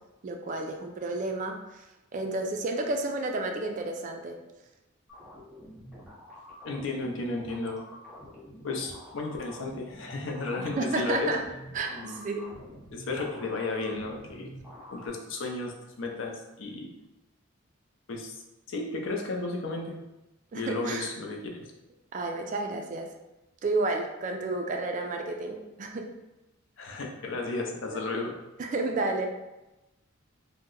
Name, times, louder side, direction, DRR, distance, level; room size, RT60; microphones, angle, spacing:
voice 1, 0.2-1.9 2.1-4.4 10.6-11.4 11.7-12.5 20.5-21.1 22.1-23.1 23.6-26.1 27.9-28.0 28.6-29.3, right 2 dB, 35° right, 3 dB, 0.3 m, -31 dB
sound 1, 5.1-15.1, equal, ahead, 0.8 m, -47 dB
voice 2, 6.6-7.8 8.6-11.3 11.9-12.2 12.9-14.5 14.9-16.9 18.1-18.4 18.7-19.9 20.5-21.6 26.8-28.3, left 3 dB, 60° left, 1 dB, 0.5 m, -33 dB
2.7 x 2.1 x 3.7 m, 0.99 s
head